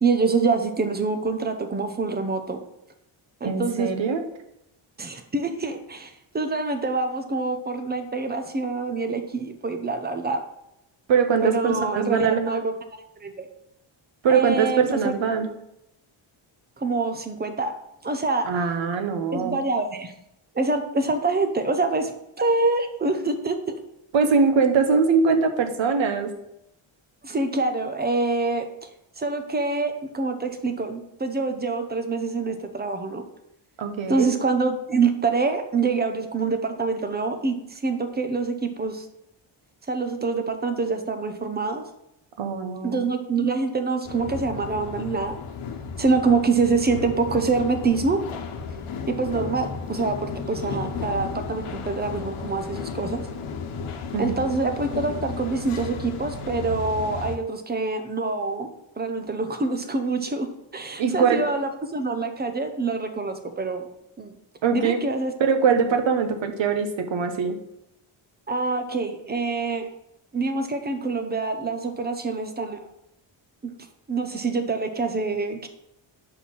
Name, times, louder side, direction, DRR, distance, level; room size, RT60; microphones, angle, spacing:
voice 1, 0.0-2.6 3.4-3.9 5.0-10.4 11.4-13.5 14.3-15.1 16.8-17.7 18.0-18.5 19.3-20.1 20.5-22.1 22.4-23.8 27.2-28.9 29.2-33.2 34.1-39.1 39.9-41.8 42.8-45.4 46.0-48.2 49.1-53.2 54.2-63.9 64.2-64.4 64.7-65.3 68.5-69.8 70.3-72.8 73.6-73.7 74.1-75.7, right 3 dB, 20° right, 7 dB, 0.6 m, -26 dB
voice 2, 3.4-4.2 11.1-12.4 14.2-15.5 18.4-19.6 24.1-26.3 33.8-34.3 42.4-43.0 54.1-54.5 61.0-61.5 64.6-65.0 65.4-67.6, right 5 dB, 65° right, 7 dB, 1.0 m, -22 dB
sound 1, 44.0-57.4, left 5 dB, 85° left, 1.0 m, -34 dB
5.5 x 4.2 x 6.1 m, 0.84 s
wide cardioid pair, 175°, 49 cm